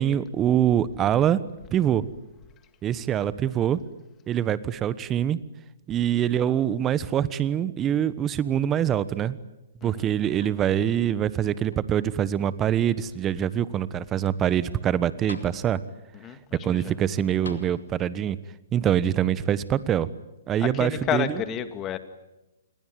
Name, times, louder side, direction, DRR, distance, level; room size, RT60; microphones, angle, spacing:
voice 1, 0.0-1.4 1.7-2.1 2.8-3.8 4.3-5.4 5.9-9.4 9.8-15.8 16.6-18.4 18.7-20.1 20.5-21.3, right 10 dB, 20° right, 17 dB, 1.2 m, -24 dB
voice 2, 9.8-10.1 16.1-16.9 20.6-22.0, left 10 dB, 25° left, 10 dB, 2.2 m, -31 dB
sound 1, 10.4-11.0 11.4-12.4 13.1-13.2 14.8-14.9 15.3-16.1 17.4-18.3 19.4-19.5, left 4 dB, 85° left, 2.6 m, -46 dB
28.0 x 21.5 x 9.3 m, 0.98 s
hypercardioid pair, 130°, 0 cm